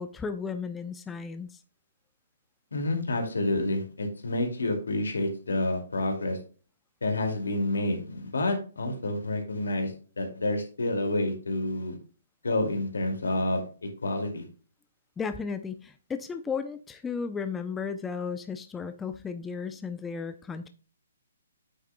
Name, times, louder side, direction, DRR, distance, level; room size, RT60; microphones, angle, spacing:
voice 1, 0.0-1.6 15.2-20.7, left 5 dB, 10° left, 9 dB, 0.5 m, -34 dB
voice 2, 2.7-6.4 7.0-12.0 12.4-14.5, left 2 dB, 90° left, 3 dB, 2.3 m, -29 dB
8.9 x 7.3 x 2.2 m, 0.39 s
hypercardioid pair, 150°, 0 cm